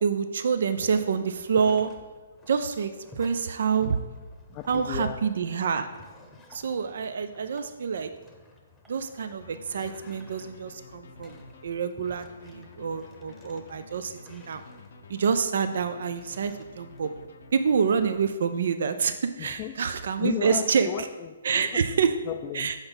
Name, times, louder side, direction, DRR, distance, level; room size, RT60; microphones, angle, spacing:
voice 1, 0.0-1.9 2.5-4.0 4.7-5.9 6.5-8.1 8.9-11.4 11.6-14.6 15.1-17.1 17.5-20.9 21.4-22.1 22.5-22.7, right 6 dB, 60° right, 10 dB, 0.4 m, -27 dB
sound 1, 0.8-17.3, left 1 dB, 10° left, 0.8 m, -53 dB
sound 2, 3.7-3.8 4.6-4.8 6.0-6.1 7.6-7.8 8.8-8.9 10.2-10.3, right 3 dB, 15° right, 1.2 m, -54 dB
voice 2, 4.5-5.3 19.4-19.7 20.2-22.7, left 12 dB, 30° left, 4 dB, 0.3 m, -35 dB
sound 3, 9.4-18.7, left 3 dB, 65° left, 0.6 m, -50 dB
5.8 x 4.0 x 5.2 m, 1.3 s
hypercardioid pair, 135°, 0 cm